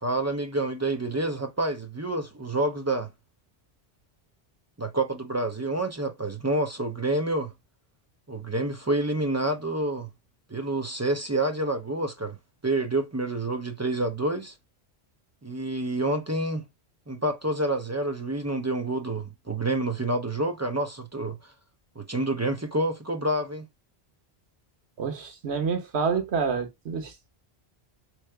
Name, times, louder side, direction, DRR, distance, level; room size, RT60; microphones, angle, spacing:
voice 1, 0.0-3.1 4.8-7.5 8.3-10.1 10.5-12.4 12.6-14.5 15.4-16.6 17.1-21.4 22.0-23.7, right 2 dB, 25° right, 0.4 m, -28 dB
voice 2, 25.0-27.3, right 5 dB, 85° right, 1.2 m, -28 dB
3.7 x 3.1 x 3.2 m
omnidirectional pair, 1.1 m